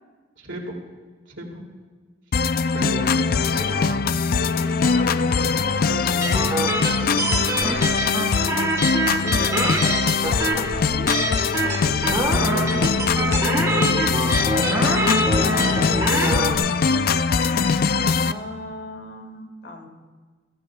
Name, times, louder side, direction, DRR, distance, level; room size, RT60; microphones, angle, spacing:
voice 1, 0.4-0.8 1.3-1.6 2.7-4.1 4.5-6.4 6.7-8.0 11.6-14.2 14.9-16.7, equal, 80° right, 0 dB, 2.6 m, -34 dB
sound 1, 2.3-18.3, left 5 dB, 50° left, 0.4 m, -22 dB
voice 2, 3.2-3.9 7.6-8.2 9.0-11.9 17.9-19.9, left 1 dB, 65° left, 4 dB, 1.7 m, -37 dB
sound 2, 6.2-16.6, right 2 dB, 15° right, 1.2 m, -25 dB
23.5 x 13.5 x 2.3 m, 1.4 s
head